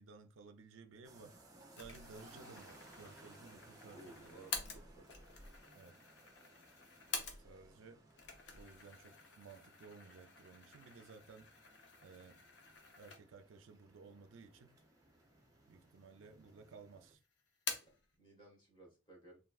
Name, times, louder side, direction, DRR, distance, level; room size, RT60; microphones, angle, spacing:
voice 1, 0.0-1.3 1.7-4.7 5.7-6.0 7.4-8.0 8.5-11.5 12.0-12.4 13.0-14.7 15.7-17.2, right 4 dB, 75° right, 0.4 m, -57 dB
sound 1, 1.0-17.1, right 2 dB, 15° right, 0.5 m, -62 dB
sound 2, 1.8-7.8 8.1-13.6 14.0-14.1 14.9-15.6 15.9-16.7 16.9-18.1, left 5 dB, 60° left, 0.6 m, -48 dB
voice 2, 3.9-5.3 17.8-19.4, right 2 dB, 25° left, 1.4 m, -59 dB
3.5 x 2.4 x 2.3 m
head